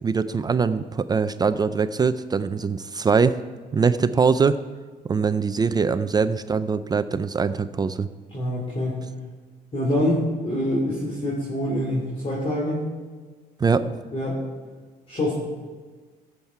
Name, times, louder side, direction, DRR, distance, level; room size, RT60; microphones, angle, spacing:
voice 1, 0.0-3.4 3.7-4.6 5.1-8.1 13.6-13.8, right 5 dB, 25° right, 12 dB, 0.4 m, -22 dB
voice 2, 8.3-9.0 9.7-12.8 14.1-14.4 15.1-15.3, left 1 dB, 35° left, -5 dB, 3.3 m, -25 dB
16.0 x 7.3 x 4.7 m, 1.4 s
cardioid pair, 110°, 17 cm